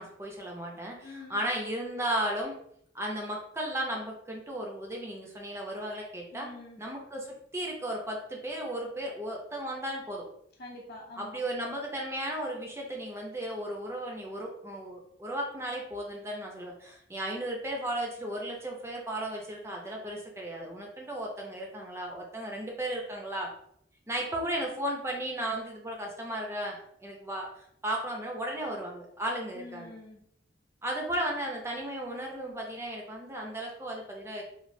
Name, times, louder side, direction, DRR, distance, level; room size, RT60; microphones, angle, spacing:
voice 1, 0.0-2.5 2.9-6.5 6.8-10.2 11.2-23.5 24.1-27.5 27.8-29.9 30.8-34.4, right 1 dB, 15° right, 0 dB, 0.4 m, -35 dB
voice 2, 1.0-1.4 6.3-6.8 10.6-11.5 29.5-30.3, left 2 dB, 55° left, 0 dB, 0.6 m, -46 dB
3.1 x 2.3 x 2.6 m, 0.70 s
head